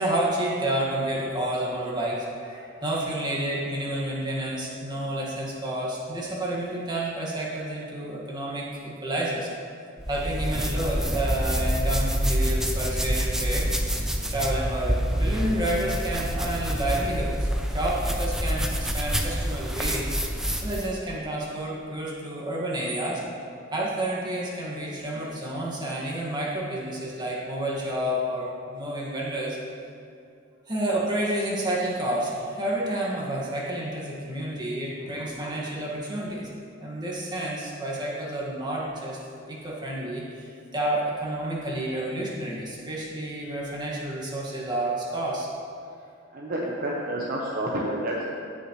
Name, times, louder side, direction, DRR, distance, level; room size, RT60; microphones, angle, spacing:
voice 1, 0.0-9.5 10.1-13.7 14.3-20.1 20.6-23.3 23.7-29.6 30.7-36.5 36.8-39.2 39.5-45.5, right 1 dB, 20° right, -5 dB, 1.9 m, -30 dB
sound 1, 10.0-20.9, equal, 5° right, 0.7 m, -27 dB
voice 2, 34.9-35.3 46.3-48.3, right 1 dB, 45° right, -3 dB, 1.0 m, -30 dB
17.0 x 6.3 x 3.2 m, 2.5 s
head